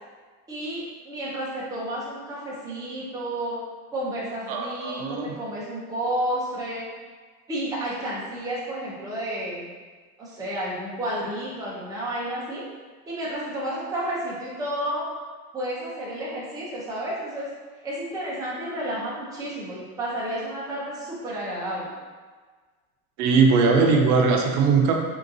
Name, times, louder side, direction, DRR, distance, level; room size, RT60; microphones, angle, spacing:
voice 1, 0.5-3.6 3.9-6.9 7.5-9.7 10.2-12.6 13.1-15.1 15.5-17.5 17.8-21.9, right 1 dB, 10° right, -7 dB, 0.6 m, -31 dB
voice 2, 4.5-5.3 23.2-24.9, right 4 dB, 70° right, 2 dB, 0.7 m, -20 dB
3.5 x 2.9 x 2.6 m, 1.4 s
supercardioid pair, 140°, 46 cm